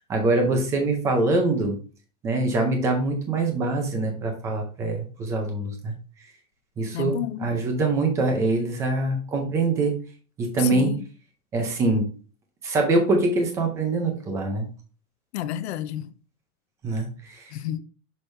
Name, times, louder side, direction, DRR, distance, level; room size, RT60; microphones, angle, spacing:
voice 1, 0.1-1.8 2.2-5.9 6.8-10.0 10.4-10.9 11.5-12.1 12.6-14.7 16.8-17.4, right 2 dB, 5° right, 0.4 m, -24 dB
voice 2, 6.9-7.5 10.6-11.1 15.3-16.1 17.5-17.8, left 12 dB, 50° left, 0.5 m, -30 dB
6.3 x 5.0 x 3.2 m
supercardioid pair, 160°, 44 cm